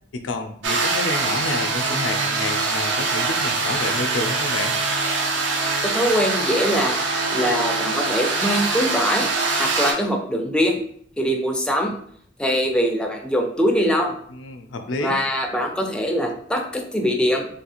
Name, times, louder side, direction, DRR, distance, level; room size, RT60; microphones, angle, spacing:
voice 1, 0.1-4.8 14.3-15.2, left 2 dB, 85° left, 6 dB, 0.4 m, -29 dB
sound 1, 0.6-9.9, right 3 dB, 75° right, 0.6 m, -23 dB
voice 2, 5.8-7.0 7.3-9.3 9.6-10.8 11.2-11.9 12.4-14.1 15.0-17.5, equal, 5° left, 2 dB, 0.3 m, -22 dB
3.2 x 2.4 x 2.9 m, 0.63 s
head